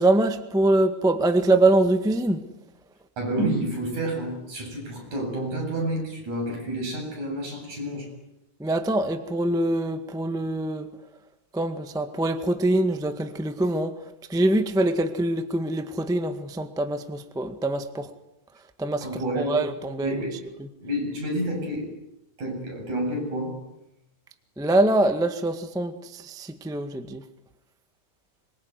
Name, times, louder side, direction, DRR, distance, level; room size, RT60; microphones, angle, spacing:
voice 1, 0.0-2.5 8.6-10.9 11.5-18.1 18.8-19.1 19.3-20.2 20.6-20.7 24.6-27.2, right 2 dB, ahead, 8 dB, 1.0 m, -24 dB
voice 2, 3.2-8.1 19.0-19.8 20.0-20.5 20.8-21.9 22.4-23.6, right 1 dB, 70° right, 1 dB, 9.5 m, -29 dB
25.5 x 23.5 x 9.6 m, 0.85 s
omnidirectional pair, 3.4 m